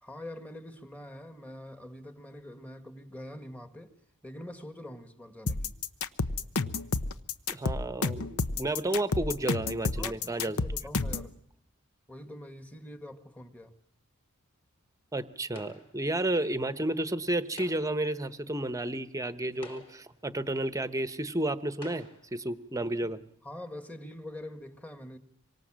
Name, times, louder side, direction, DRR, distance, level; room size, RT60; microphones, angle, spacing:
voice 1, 0.0-3.9 4.2-5.8 10.0-11.3 12.1-13.7 22.8-23.1 23.4-25.2, left 1 dB, 5° left, 1.6 m, -44 dB
sound 1, 5.5-11.3, left 3 dB, 75° left, 1.0 m, -30 dB
voice 2, 7.5-10.6 15.1-23.2, right 1 dB, 15° right, 1.0 m, -32 dB
sound 2, 15.5-16.1 17.4-18.1 18.9-19.0 19.5-20.2 21.1-21.2 21.7-22.3, left 1 dB, 25° left, 4.6 m, -49 dB
26.5 x 23.5 x 7.5 m
head